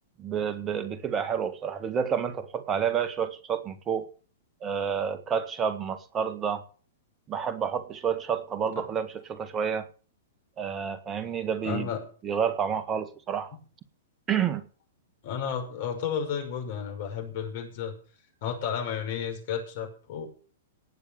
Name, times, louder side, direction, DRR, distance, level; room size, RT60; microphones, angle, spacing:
voice 1, 0.2-4.1 4.6-6.6 7.3-9.9 10.6-11.9 12.2-13.5 14.3-14.7, right 7 dB, 25° right, 11 dB, 1.9 m, -29 dB
voice 2, 11.6-12.0 15.2-18.0 18.4-20.3, left 7 dB, 50° left, 4 dB, 5.7 m, -32 dB
18.0 x 7.1 x 7.1 m, 0.41 s
figure-of-eight pair, 105°, 0 cm